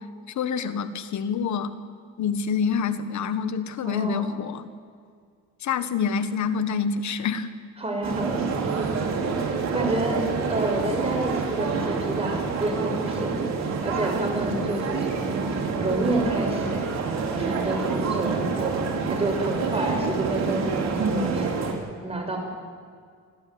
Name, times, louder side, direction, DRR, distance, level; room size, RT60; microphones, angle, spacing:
voice 1, 0.3-1.8 2.2-4.7 5.6-7.5, left 6 dB, 70° left, 12 dB, 1.6 m, -27 dB
voice 2, 3.8-4.3 7.8-8.5 9.7-10.2 10.5-13.5 13.8-15.4 15.8-16.8 17.4-18.8 19.1-21.5 22.0-22.4, right 1 dB, 20° right, 2 dB, 6.1 m, -29 dB
sound 1, 8.0-21.7, right 4 dB, 60° right, 5.0 m, -27 dB
28.5 x 12.0 x 9.7 m, 2.1 s
cardioid pair, 90°, 30 cm